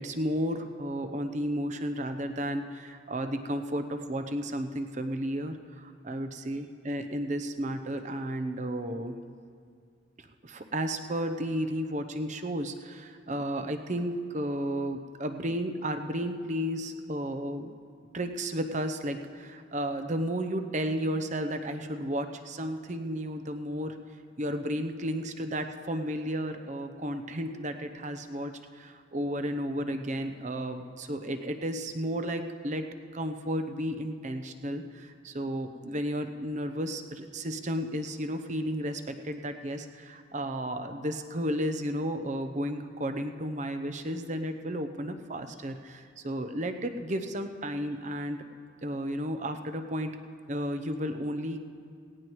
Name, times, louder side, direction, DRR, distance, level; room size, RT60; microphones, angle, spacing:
voice 1, 0.0-9.2 10.4-17.7 18.1-24.0 24.4-32.9 33.1-48.4 48.8-50.2 50.5-51.6, equal, 40° right, 8 dB, 0.7 m, -33 dB
18.0 x 17.5 x 3.1 m, 2.2 s
head